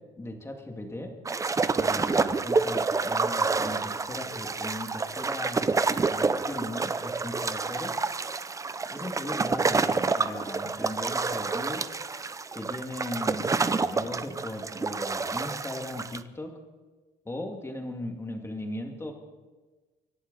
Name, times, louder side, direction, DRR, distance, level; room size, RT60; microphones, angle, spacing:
voice 1, 0.2-1.1 1.7-7.9 8.9-11.9 12.5-16.6 17.2-19.1, left 1 dB, 15° left, 3 dB, 2.3 m, -38 dB
sound 1, 1.3-16.2, right 4 dB, 20° right, 0.6 m, -28 dB
25.0 x 11.5 x 4.1 m, 1.3 s
cardioid pair, 110°, 17 cm